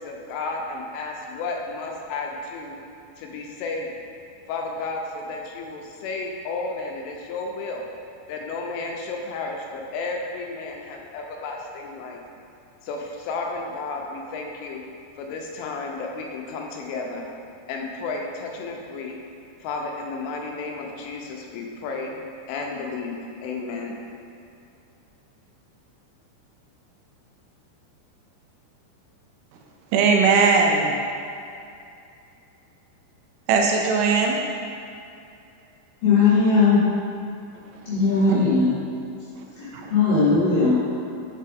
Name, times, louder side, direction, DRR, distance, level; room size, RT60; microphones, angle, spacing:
voice 1, 0.0-2.8 3.2-3.9 4.5-7.9 8.3-12.2 12.8-14.8 15.2-17.3 17.7-19.2 19.6-22.2 22.5-24.0, left 3 dB, 85° left, 3.1 m, -32 dB
voice 2, 29.9-30.9 33.5-34.4 38.3-38.4 39.7-39.9, right 5 dB, 85° right, 2.9 m, -19 dB
voice 3, 36.0-36.9 37.9-38.8 39.6-40.8, left 4 dB, 70° left, 2.4 m, -19 dB
7.5 x 4.3 x 3.5 m
omnidirectional pair, 5.5 m